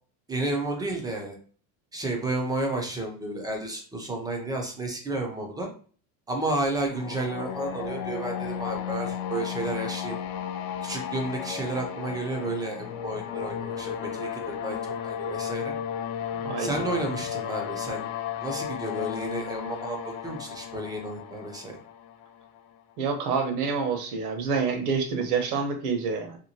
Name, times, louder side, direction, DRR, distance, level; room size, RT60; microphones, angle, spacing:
voice 1, 0.3-1.4 1.9-5.7 6.3-10.2 10.8-15.7 16.6-18.1 18.4-21.8, right 2 dB, 10° right, 2 dB, 0.4 m, -31 dB
sound 1, 6.9-22.7, left 9 dB, 60° left, 0.5 m, -34 dB
voice 2, 23.0-26.4, right 5 dB, 80° right, 6 dB, 1.0 m, -27 dB
2.9 x 2.7 x 2.7 m, 0.43 s
supercardioid pair, 140°, 44 cm